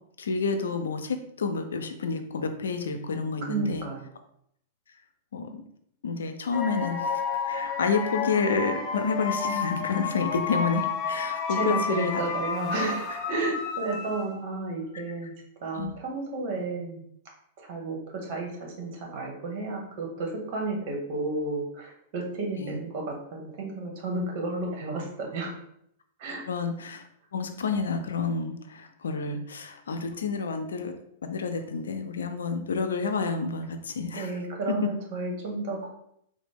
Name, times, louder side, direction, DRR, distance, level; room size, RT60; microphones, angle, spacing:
voice 1, 0.2-3.9 5.3-5.6 6.0-12.2 15.8-15.9 22.6-22.8 26.5-27.0 27.3-30.9 31.2-34.3 34.7-34.9, left 4 dB, 90° left, 7 dB, 0.4 m, -29 dB
voice 2, 3.4-4.1 11.5-15.3 15.6-17.0 17.6-25.5 26.2-26.4 34.1-35.9, right 2 dB, 55° right, 1 dB, 1.2 m, -32 dB
sound 1, 6.5-14.6, left 5 dB, 35° left, 0.5 m, -31 dB
3.8 x 2.0 x 3.4 m, 0.71 s
hypercardioid pair, 120°, 0 cm